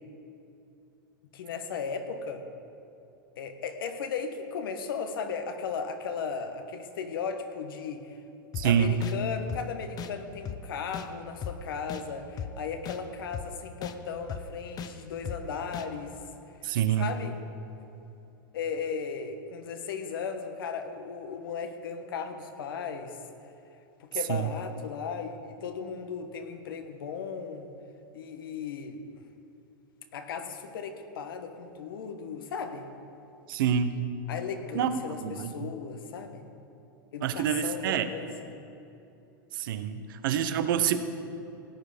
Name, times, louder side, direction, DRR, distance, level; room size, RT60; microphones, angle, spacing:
voice 1, 1.3-2.4 3.4-8.2 8.6-16.2 16.6-17.4 18.5-23.2 24.0-27.7 28.1-29.0 30.1-32.9 34.3-36.4 37.1-38.5, left 6 dB, 80° left, 7 dB, 1.4 m, -36 dB
sound 1, 8.5-8.7 9.0-9.1 9.5-9.6 10.0-10.1 10.5-10.6 10.9-11.1 11.4-11.5 11.9-12.0 12.4-12.5 12.9-13.0 13.3-13.5 13.8-13.9 14.3-14.4 14.8-14.9 15.3-15.4 15.7-15.9, left 9 dB, 35° left, 0.8 m, -36 dB
voice 2, 8.5-8.9 16.6-17.1 24.3-24.5 33.5-34.1 34.7-35.7 37.2-38.1 39.5-41.0, right 9 dB, 70° right, 10 dB, 1.0 m, -27 dB
17.5 x 9.7 x 5.2 m, 2.7 s
hypercardioid pair, 115°, 12 cm